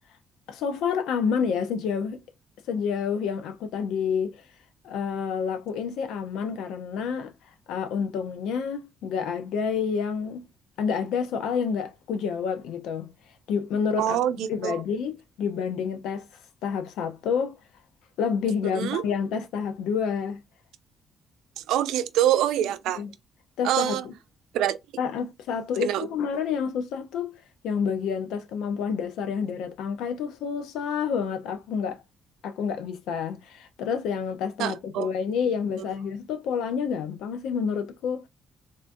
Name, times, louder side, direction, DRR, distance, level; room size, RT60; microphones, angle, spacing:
voice 1, 0.5-2.2 2.7-4.4 4.8-7.3 7.7-10.5 10.8-13.1 13.5-14.2 14.5-16.3 16.6-17.6 18.2-20.4 23.0-23.1 23.6-24.1 25.0-27.3 27.6-32.0 32.4-38.2, left 6 dB, 90° left, 0.6 m, -28 dB
voice 2, 14.0-14.8 18.7-19.0 21.6-23.0 23.6-24.0 24.5-24.8 25.8-26.1 34.6-35.1, right 11 dB, 90° right, 0.4 m, -25 dB
3.7 x 2.5 x 2.3 m
cardioid pair, 90°, 0 cm